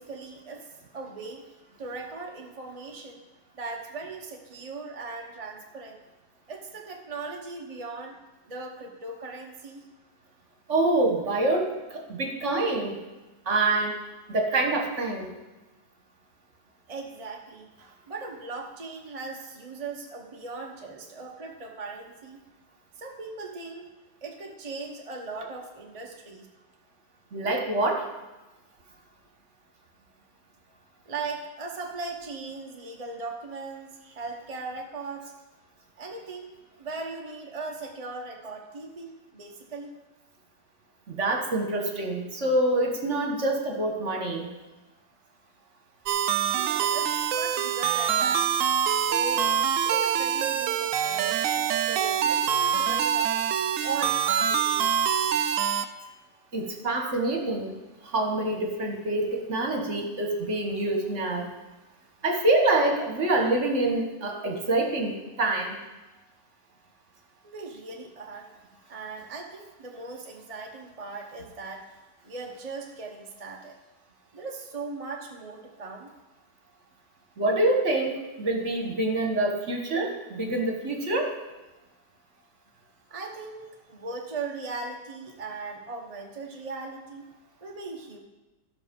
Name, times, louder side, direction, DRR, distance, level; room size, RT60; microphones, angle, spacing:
voice 1, 0.0-1.5 1.8-3.2 3.5-6.0 6.5-8.2 8.4-9.9 16.9-22.4 23.0-23.9 24.2-26.5 31.1-35.3 36.0-36.5 36.8-40.0 46.5-48.5 49.0-53.4 53.8-55.4 67.4-68.5 68.9-71.9 72.2-73.8 74.3-76.1 83.1-87.3 87.6-88.2, right 3 dB, 25° right, 0 dB, 0.8 m, -38 dB
voice 2, 10.7-13.0 13.4-14.0 14.3-15.3 27.3-28.1 41.1-44.5 56.5-57.7 58.0-61.5 62.2-65.8 77.4-81.3, right 2 dB, 45° right, 2 dB, 1.5 m, -26 dB
sound 1, 46.1-55.8, right 8 dB, 75° right, 0.7 m, -25 dB
13.5 x 6.0 x 5.2 m, 1.1 s
omnidirectional pair, 1.9 m